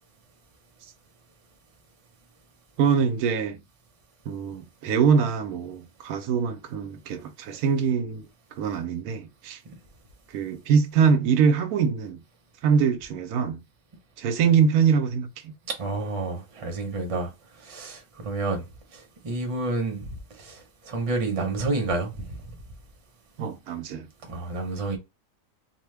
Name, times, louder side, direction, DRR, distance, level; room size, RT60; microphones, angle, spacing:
voice 1, 2.8-3.6 4.3-8.3 8.6-9.6 10.3-12.2 12.6-13.6 14.2-15.5 23.4-24.1, right 6 dB, 90° right, 1.1 m, -23 dB
voice 2, 15.7-17.3 17.6-18.6 18.9-20.1 20.4-22.2 24.3-25.0, right 3 dB, 30° right, 0.7 m, -29 dB
2.8 x 2.1 x 3.2 m
omnidirectional pair, 1.5 m